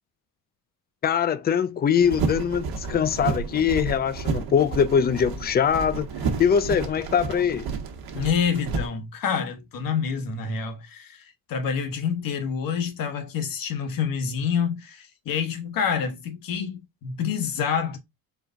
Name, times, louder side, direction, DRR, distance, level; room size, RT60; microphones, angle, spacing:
voice 1, 1.0-6.1 6.4-7.7, left 7 dB, 25° left, 0.4 m, -22 dB
sound 1, 2.0-8.9, right 4 dB, 65° right, 1.2 m, -31 dB
voice 2, 8.1-18.0, left 6 dB, 60° left, 1.1 m, -27 dB
4.6 x 2.2 x 3.7 m
cardioid pair, 95°, 38 cm